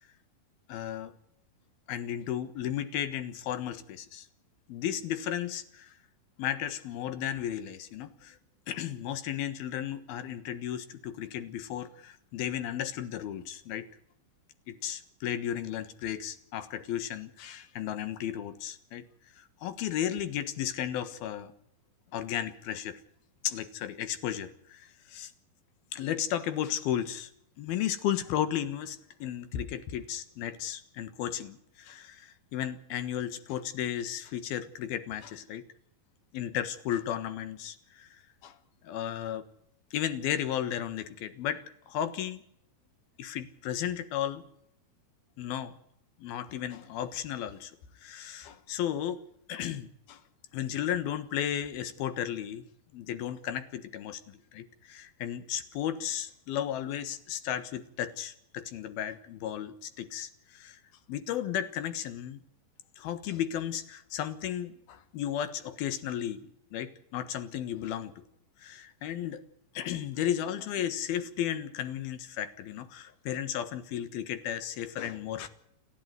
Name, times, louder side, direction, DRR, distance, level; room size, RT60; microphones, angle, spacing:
voice 1, 0.7-1.1 1.9-4.3 4.7-5.9 6.4-8.4 8.7-13.9 14.7-19.0 19.4-21.5 22.1-23.0 23.4-25.3 25.9-27.3 27.6-35.6 36.3-38.5 38.8-39.5 39.9-42.4 43.2-44.4 45.4-45.8 46.2-47.7 48.0-49.2 49.5-50.2 50.5-52.6 52.9-60.8 61.1-62.4 63.0-68.2 68.6-69.4 69.7-75.5, left 10 dB, 80° left, 12 dB, 3.2 m, -34 dB
29.5 x 11.0 x 9.4 m, 0.71 s
omnidirectional pair, 4.3 m